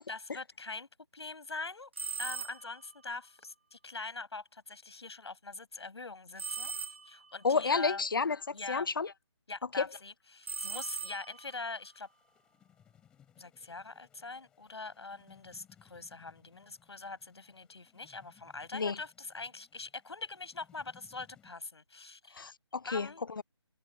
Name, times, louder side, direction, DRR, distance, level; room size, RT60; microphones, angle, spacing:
voice 1, 0.1-1.9 2.2-8.0 8.5-8.9 9.5-12.1 13.4-22.5 22.8-23.2, left 3 dB, 70° left, 7.0 m, -43 dB
sound 1, 1.9-2.9 6.4-7.4 10.4-11.6, right 4 dB, 25° right, 0.5 m, -39 dB
voice 2, 7.4-8.4 8.7-9.1 9.8-9.9 18.7-19.0 22.4-23.1 23.4-23.5, left 5 dB, 50° left, 1.0 m, -30 dB
sound 2, 10.8-21.5, left 9 dB, 5° left, 4.3 m, -65 dB
figure-of-eight pair, 175°, 15 cm